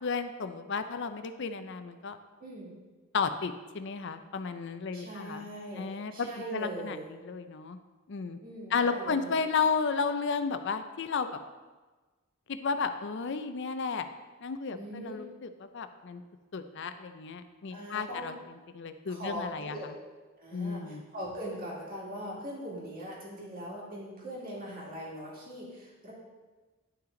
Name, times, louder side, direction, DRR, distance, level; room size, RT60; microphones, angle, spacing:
voice 1, 0.0-2.2 3.1-5.5 5.7-7.8 8.1-8.4 8.7-11.3 12.5-14.1 14.4-16.2 16.5-18.4 18.7-19.9 20.5-21.0, left 5 dB, 60° left, 10 dB, 0.5 m, -33 dB
voice 2, 2.4-2.7 4.9-7.1 8.4-9.3 14.7-15.2 17.7-18.3 19.1-20.0 20.4-26.1, equal, 45° right, -4 dB, 2.3 m, -41 dB
11.0 x 5.7 x 3.8 m, 1.3 s
head